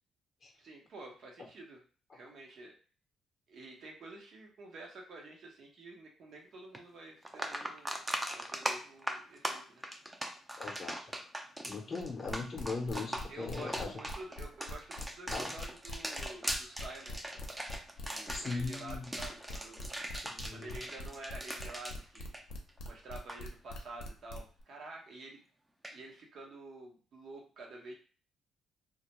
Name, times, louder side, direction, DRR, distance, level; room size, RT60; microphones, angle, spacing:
voice 1, 0.6-1.8 2.1-2.7 3.5-8.0 8.3-9.8 13.3-17.2 18.0-19.9 20.5-22.3 22.8-25.4 25.9-27.9, right 2 dB, 65° right, 0 dB, 0.9 m, -49 dB
sound 1, 6.7-6.8 7.2-22.9 23.1-23.4 25.8-26.0, right 1 dB, 10° right, 0.4 m, -40 dB
voice 2, 10.6-11.0 11.7-13.9 15.3-15.5 18.3-19.1 20.2-20.8, left 4 dB, 40° left, -1 dB, 0.6 m, -39 dB
sound 2, 12.0-24.6, left 2 dB, 80° left, 0.5 m, -43 dB
2.3 x 2.1 x 3.0 m, 0.39 s
cardioid pair, 90°, 0 cm